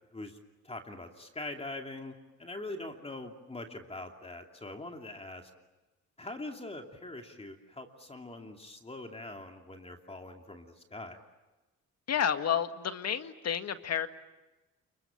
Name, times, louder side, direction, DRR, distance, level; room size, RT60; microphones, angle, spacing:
voice 1, 0.6-5.5 6.2-11.2, left 2 dB, 20° left, 4 dB, 2.8 m, -43 dB
voice 2, 12.1-14.1, left 8 dB, 55° left, 9 dB, 1.9 m, -30 dB
29.5 x 22.5 x 8.8 m, 1.1 s
cardioid pair, 90°, 30 cm